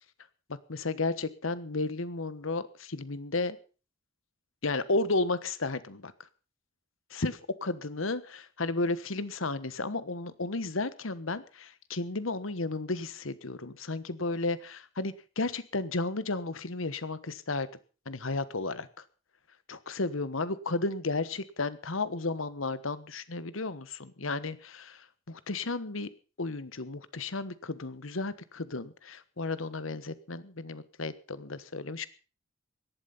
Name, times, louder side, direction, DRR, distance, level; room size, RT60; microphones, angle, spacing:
voice 1, 0.5-3.6 4.6-6.1 7.1-17.7 18.1-18.9 19.7-26.1 26.4-32.1, left 3 dB, 85° left, 16 dB, 1.3 m, -33 dB
17.5 x 12.0 x 5.6 m, 0.37 s
head